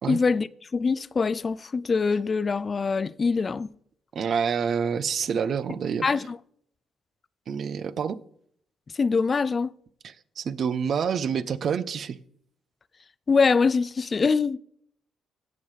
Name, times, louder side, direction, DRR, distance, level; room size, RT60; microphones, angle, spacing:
voice 1, 0.1-3.7 6.0-6.4 9.0-9.7 13.3-14.6, left 4 dB, 35° left, 0.3 m, -24 dB
voice 2, 4.1-6.0 7.5-8.2 10.0-12.2, right 7 dB, 55° right, 0.5 m, -27 dB
16.5 x 5.7 x 3.2 m
cardioid pair, 90°, 0 cm